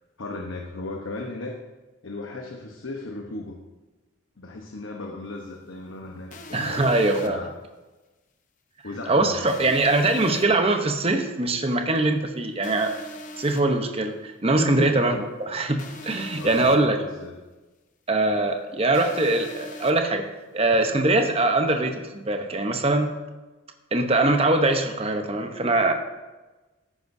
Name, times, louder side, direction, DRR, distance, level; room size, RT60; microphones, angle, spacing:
voice 1, 0.2-1.6 2.0-3.6 4.4-6.8 7.2-7.5 8.8-9.6 14.5-15.0 16.4-17.3, left 2 dB, 80° left, 1 dB, 1.0 m, -35 dB
sound 1, 6.3-7.3 9.5-10.4 12.6-13.6 15.8-16.8 18.9-19.9, left 1 dB, 40° left, 0.9 m, -41 dB
voice 2, 6.5-7.4 9.1-13.0 13.4-17.0 18.1-20.3 20.5-23.1 23.9-25.9, right 2 dB, 30° right, 5 dB, 0.9 m, -22 dB
13.5 x 9.8 x 2.7 m, 1.2 s
head